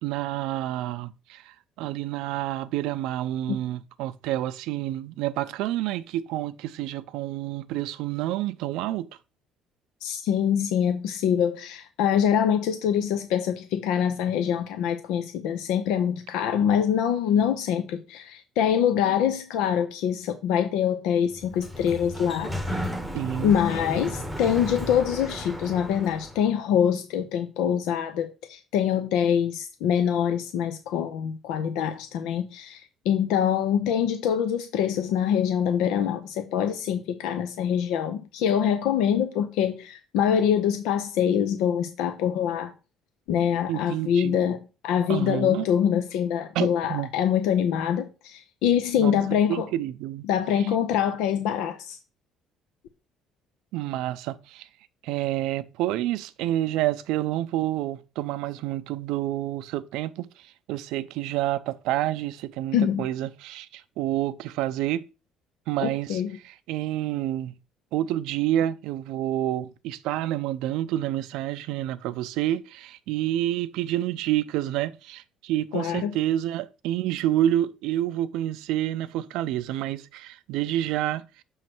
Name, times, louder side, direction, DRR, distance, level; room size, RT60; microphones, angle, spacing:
voice 1, 0.0-9.1 23.1-23.6 43.7-44.4 45.1-45.7 46.5-47.1 49.0-49.2 49.5-50.3 53.7-54.7 55.0-65.0 65.7-67.5 67.9-81.2, right 13 dB, 85° right, 0.5 m, -28 dB
voice 2, 10.0-22.8 23.4-42.7 43.3-49.7 50.3-52.0 62.7-63.1 65.8-66.4 75.7-76.2, left 9 dB, 85° left, 0.6 m, -25 dB
Sliding door, 21.3-26.5, equal, 5° right, 0.9 m, -34 dB
6.4 x 3.2 x 5.9 m
cardioid pair, 130°, 0 cm